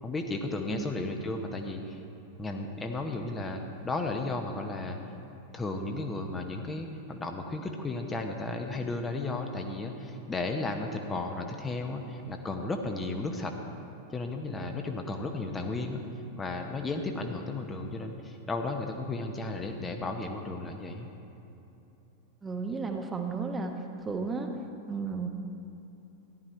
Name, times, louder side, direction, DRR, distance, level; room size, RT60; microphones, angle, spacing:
voice 1, 0.0-2.0 2.4-5.0 5.5-13.5 14.1-16.0 16.4-21.1, left 2 dB, 15° left, 4 dB, 1.0 m, -34 dB
voice 2, 22.4-23.8 24.0-24.5 24.9-25.3, right 4 dB, 15° right, 4 dB, 1.1 m, -33 dB
14.5 x 11.0 x 4.4 m, 2.9 s
figure-of-eight pair, 90°, 0 cm